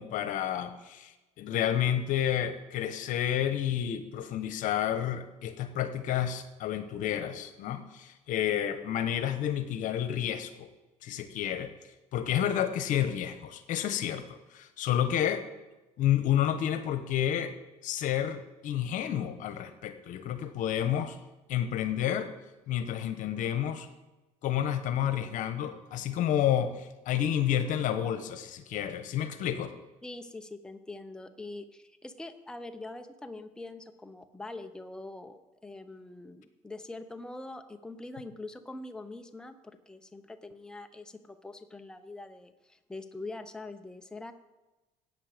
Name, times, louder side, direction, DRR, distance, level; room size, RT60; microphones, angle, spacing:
voice 1, 0.0-10.7 11.0-11.7 12.1-15.5 16.0-17.5 17.8-21.2 21.5-22.3 22.7-23.9 24.4-29.7, left 10 dB, 65° left, 10 dB, 1.2 m, -30 dB
voice 2, 30.0-44.3, left 2 dB, 5° left, 7 dB, 0.8 m, -44 dB
15.5 x 8.9 x 5.2 m, 1.1 s
cardioid pair, 105°, 14 cm